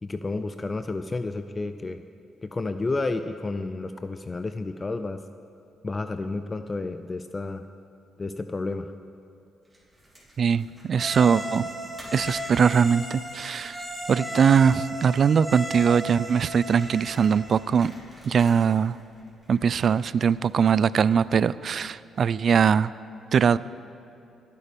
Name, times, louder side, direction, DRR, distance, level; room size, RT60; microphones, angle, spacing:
voice 1, 0.0-2.0 2.4-5.2 5.8-7.6 8.2-8.9, left 3 dB, 25° left, 9 dB, 0.5 m, -31 dB
sound 1, 9.6-21.7, right 1 dB, 15° right, 3.7 m, -53 dB
voice 2, 10.4-11.7 12.1-13.8 14.1-17.9 18.2-19.0 19.5-22.9 23.3-23.6, right 7 dB, 50° right, 18 dB, 0.3 m, -21 dB
sound 2, 11.0-17.6, equal, ahead, 2.8 m, -35 dB
22.0 x 8.5 x 5.2 m, 2.6 s
cardioid pair, 90°, 0 cm